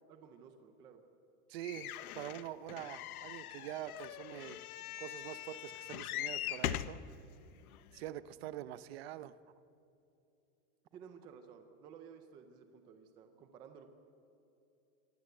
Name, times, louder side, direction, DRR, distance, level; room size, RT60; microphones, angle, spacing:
voice 1, 0.1-1.0 10.9-13.9, right 7 dB, 10° right, 7 dB, 0.4 m, -55 dB
voice 2, 1.5-4.6 5.0-7.0 7.9-9.3, right 13 dB, 45° right, 16 dB, 0.8 m, -45 dB
sound 1, 1.6-7.0 7.7-7.8 8.1-8.2, left 13 dB, 75° left, 1.0 m, -41 dB
24.0 x 18.5 x 7.8 m, 2.8 s
supercardioid pair, 165°, 44 cm